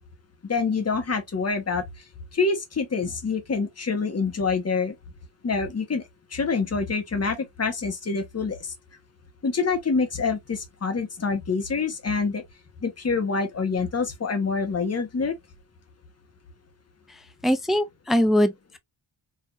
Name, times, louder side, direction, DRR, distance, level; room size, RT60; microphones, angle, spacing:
voice 1, 0.4-1.8 2.3-4.9 5.4-6.1 6.3-8.7 9.4-12.4 12.8-15.3, left 4 dB, 35° left, 1.3 m, -26 dB
voice 2, 17.4-18.8, equal, ahead, 0.5 m, -22 dB
5.1 x 2.8 x 2.5 m
wide cardioid pair, 120°, 43 cm